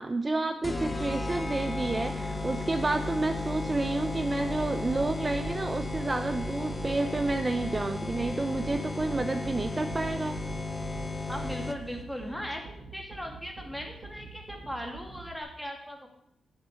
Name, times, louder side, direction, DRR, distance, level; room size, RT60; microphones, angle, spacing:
voice 1, 0.0-10.4, right 2 dB, 25° right, 8 dB, 0.6 m, -30 dB
sound 1, 0.6-12.0, left 3 dB, 20° left, 0.7 m, -35 dB
sound 2, 0.7-15.4, right 4 dB, 90° right, 1.6 m, -44 dB
voice 2, 11.3-12.6 12.9-16.1, equal, ahead, 2 dB, 2.3 m, -38 dB
9.4 x 7.8 x 6.3 m, 0.78 s
cardioid pair, 100°, 0 cm